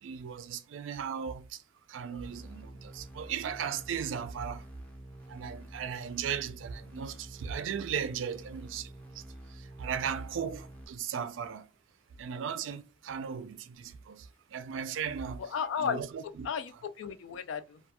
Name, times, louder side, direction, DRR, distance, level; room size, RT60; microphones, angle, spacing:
voice 1, 0.0-1.6 1.9-4.7 5.3-9.2 9.5-11.7 12.2-15.5 15.8-16.5, right 7 dB, 80° right, 0.4 m, -37 dB
sound 1, 2.2-10.9, right 1 dB, 5° left, 0.5 m, -48 dB
voice 2, 15.4-17.8, left 7 dB, 80° left, 0.3 m, -35 dB
2.3 x 2.2 x 2.8 m
head